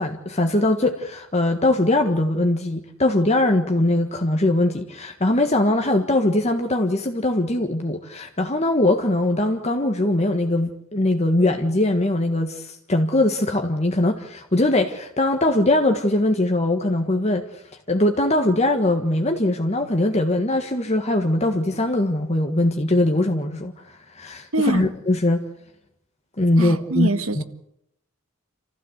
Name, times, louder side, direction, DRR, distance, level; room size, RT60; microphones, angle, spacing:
voice 1, 0.0-17.6 17.9-25.4 26.4-27.1 27.4-27.5, left 1 dB, 30° left, 1.6 m, -21 dB
voice 2, 24.5-24.9 26.6-27.4, right 2 dB, 80° right, 1.8 m, -24 dB
28.5 x 15.0 x 8.1 m
head